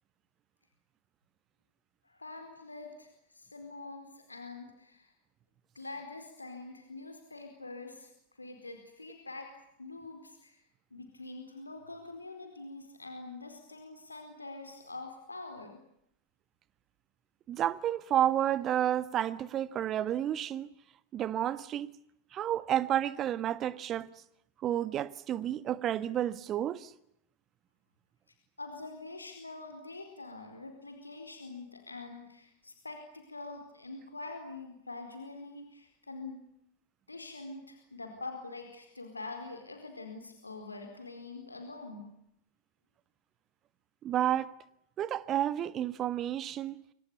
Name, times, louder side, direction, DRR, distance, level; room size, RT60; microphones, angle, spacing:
voice 1, 2.0-5.1 5.7-8.1 8.4-9.5 9.8-10.6 10.9-15.8 28.6-36.4 37.1-42.1, left 3 dB, 80° left, 4.5 m, -45 dB
voice 2, 17.5-20.7 21.1-21.9 22.3-24.1 24.6-26.9 44.0-44.5 45.0-46.8, right 11 dB, 30° right, 1.5 m, -31 dB
29.5 x 25.5 x 7.0 m
figure-of-eight pair, 90°, 0 cm